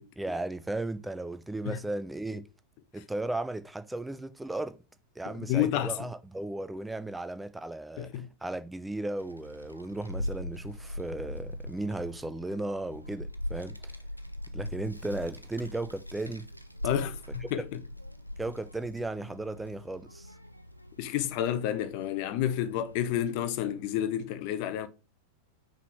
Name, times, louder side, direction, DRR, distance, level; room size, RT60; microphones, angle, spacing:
voice 1, 0.2-2.4 2.9-4.8 5.2-13.9 14.5-16.5 18.4-20.3, right 2 dB, 5° right, 0.5 m, -35 dB
voice 2, 5.4-5.9 8.0-8.3 16.8-17.7 21.0-24.9, left 11 dB, 45° left, 0.8 m, -30 dB
Child speech kid speaking, 9.2-23.6, left 1 dB, 90° left, 0.6 m, -41 dB
5.8 x 3.6 x 4.4 m
figure-of-eight pair, 90°, 0 cm